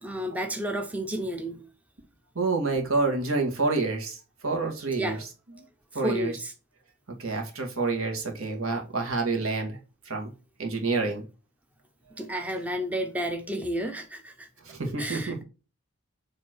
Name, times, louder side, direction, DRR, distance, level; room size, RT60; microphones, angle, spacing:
voice 1, 0.0-1.7 5.0-5.2 6.0-6.5 12.1-14.5 14.9-15.4, equal, 5° right, 0.6 m, -31 dB
voice 2, 2.4-4.2 4.4-5.6 5.9-6.4 7.2-9.8 10.1-10.3 10.6-11.2 14.7-15.4, right 3 dB, 75° right, 1.9 m, -28 dB
7.3 x 3.2 x 4.4 m
head